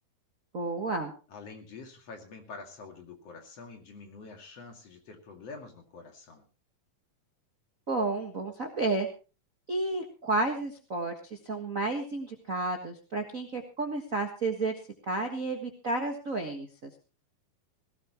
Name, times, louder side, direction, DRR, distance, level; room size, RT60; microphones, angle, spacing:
voice 1, 0.5-1.1 7.9-9.1 9.7-14.7 15.1-16.9, right 3 dB, 40° right, 3 dB, 1.3 m, -31 dB
voice 2, 1.3-6.4, left 4 dB, 50° left, 3 dB, 3.3 m, -46 dB
18.5 x 17.0 x 3.0 m, 0.33 s
omnidirectional pair, 3.7 m